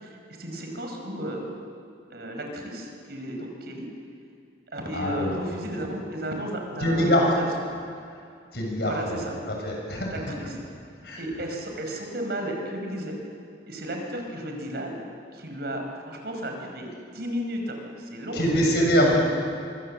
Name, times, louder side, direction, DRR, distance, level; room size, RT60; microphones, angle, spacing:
voice 1, 0.0-1.4 2.1-3.9 4.7-7.4 8.8-9.4 10.1-10.6 11.2-13.2 13.7-15.0 15.3-18.8, equal, 60° right, 2 dB, 5.3 m, -34 dB
voice 2, 4.9-5.3 6.8-7.2 8.5-9.2 9.6-10.3 11.0-11.2 18.3-19.2, equal, 65° left, 0 dB, 7.0 m, -23 dB
24.5 x 24.0 x 7.8 m, 2.4 s
head